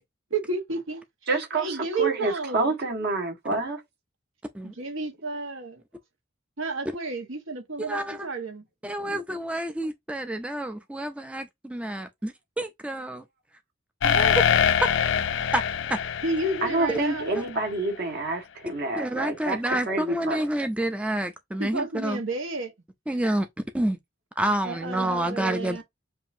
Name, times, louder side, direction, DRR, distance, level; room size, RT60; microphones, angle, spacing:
voice 1, 0.3-1.0 1.5-2.7 4.6-5.8 6.6-8.6 16.2-17.3 21.6-22.7 24.6-25.8, right 3 dB, 80° right, 1.3 m, -31 dB
voice 2, 1.3-3.8 16.6-20.5, right 2 dB, 55° right, 1.5 m, -28 dB
voice 3, 7.9-8.3 8.8-13.2 14.0-14.4 15.5-15.6 15.9-16.0 16.9-17.0 19.0-22.2 23.1-23.5 23.7-24.0 24.4-25.8, right 1 dB, 5° right, 0.4 m, -28 dB
sound 1, 14.0-17.7, left 8 dB, 65° left, 0.5 m, -24 dB
7.3 x 2.6 x 2.6 m
head